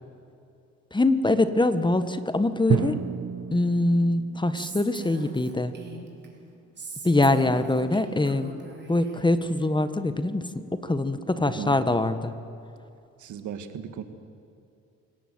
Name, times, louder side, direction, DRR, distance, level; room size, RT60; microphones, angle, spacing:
voice 1, 0.9-3.0 3.5-5.7 7.0-8.5 8.9-12.3, left 2 dB, 15° left, 11 dB, 1.4 m, -23 dB
Drum, 2.7-6.7, right 8 dB, 60° right, 1.2 m, -32 dB
Female speech woman speaking, 4.5-6.3 6.8-9.3, right 3 dB, 35° right, 4.9 m, -41 dB
voice 2, 11.4-11.8 13.2-14.0, right 8 dB, 75° right, 9 dB, 1.9 m, -37 dB
28.0 x 18.0 x 7.9 m, 2.6 s
cardioid pair, 90°, 30 cm